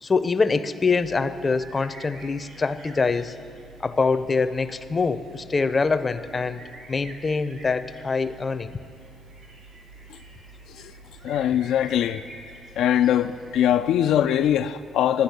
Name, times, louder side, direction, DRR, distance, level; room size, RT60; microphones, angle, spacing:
voice 1, 0.0-3.3 3.8-6.6 6.9-8.7, left 4 dB, 30° left, 0.6 m, -24 dB
sound 1, 1.0-14.4, right 2 dB, 85° right, 2.7 m, -47 dB
voice 2, 11.2-12.2 12.8-15.2, left 10 dB, 80° left, 0.3 m, -21 dB
12.0 x 9.9 x 8.1 m
cardioid pair, 90°, 0 cm